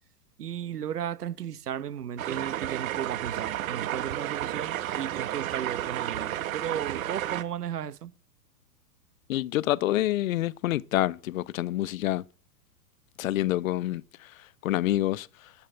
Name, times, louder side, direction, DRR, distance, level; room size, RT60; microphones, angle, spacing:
voice 1, 0.4-8.1, right 9 dB, 80° right, 1.1 m, -35 dB
sound 1, 2.2-7.4, right 12 dB, 60° right, 1.4 m, -32 dB
voice 2, 9.3-12.2 13.2-14.0 14.6-15.3, left 15 dB, 60° left, 0.6 m, -27 dB
12.0 x 8.7 x 7.8 m
hypercardioid pair, 115°, 46 cm